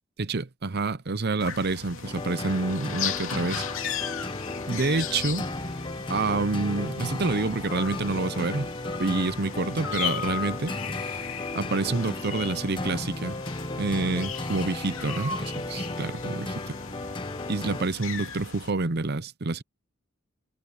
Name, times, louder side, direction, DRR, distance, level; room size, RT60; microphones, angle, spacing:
voice 1, 0.2-4.1 4.7-5.5 6.1-8.7 9.0-10.7 11.0-11.2 11.5-13.4 13.8-16.8 17.5-19.6, right 3 dB, 50° right, 0.8 m, -28 dB
sound 1, 1.4-18.7, left 7 dB, 75° left, 2.7 m, -37 dB
sound 2, 2.0-17.9, left 2 dB, 25° left, 1.1 m, -35 dB
head